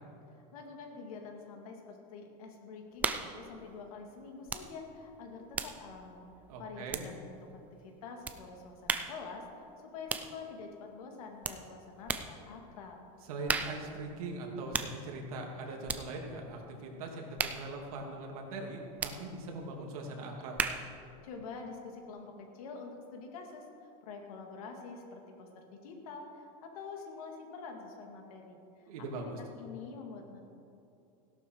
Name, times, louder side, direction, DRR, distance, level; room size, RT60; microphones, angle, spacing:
voice 1, 0.5-6.2 6.6-7.5 7.8-9.5 9.8-13.0 21.2-28.9 29.4-30.5, left 4 dB, 80° left, 2 dB, 2.3 m, -46 dB
sound 1, 3.0-3.4 4.5-4.7 5.0-7.4 8.2-8.4 8.9-9.2 10.1-10.4 11.4-11.6 12.1-12.4 13.5-13.9 14.7-15.0 15.8-16.1 17.4-17.7 19.0-19.2 20.6-20.9, right 5 dB, 10° right, 0.3 m, -35 dB
voice 2, 6.5-7.0 13.3-17.3 17.5-20.6 28.9-29.4, right 2 dB, 80° right, 0 dB, 2.7 m, -41 dB
16.0 x 11.5 x 4.7 m, 2.6 s
supercardioid pair, 175°, 18 cm